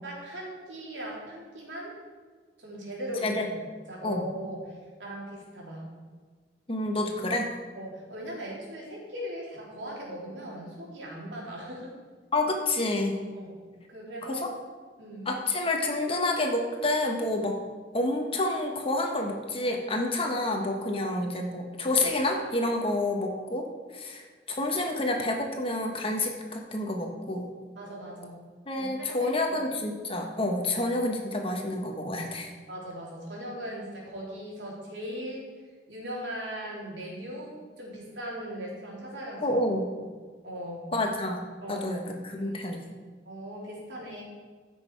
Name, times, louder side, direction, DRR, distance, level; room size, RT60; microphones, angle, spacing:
voice 1, 0.0-1.9 2.6-3.3 3.9-5.9 7.7-11.9 13.3-13.6 13.9-14.5 15.0-15.3 20.9-21.1 27.8-28.4 28.7-29.6 32.7-35.4 35.9-39.6 40.4-40.9 41.6-41.9 42.4-42.6 43.3-44.2, equal, 75° right, -3 dB, 3.5 m, -39 dB
voice 2, 6.7-7.5 12.3-13.2 14.2-14.5 15.2-17.6 17.9-23.7 23.9-27.5 28.7-32.5 39.4-39.8 40.9-42.9, left 2 dB, 30° left, 2 dB, 1.4 m, -29 dB
14.5 x 6.6 x 4.8 m, 1.5 s
head